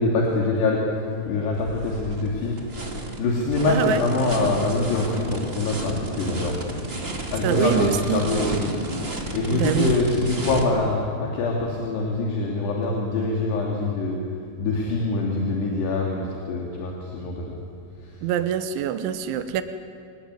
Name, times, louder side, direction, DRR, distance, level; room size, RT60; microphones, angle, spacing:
voice 1, 0.0-2.6 2.9-6.8 7.3-8.7 9.3-14.2 14.6-17.5, left 3 dB, 65° left, -2 dB, 4.5 m, -24 dB
sound 1, 1.5-10.6, right 2 dB, 35° right, 0.9 m, -32 dB
voice 2, 3.7-4.0 7.4-8.2 9.5-10.0 18.2-19.6, right 9 dB, 90° right, 10 dB, 3.4 m, -24 dB
25.5 x 19.0 x 9.6 m, 2.4 s
omnidirectional pair, 5.2 m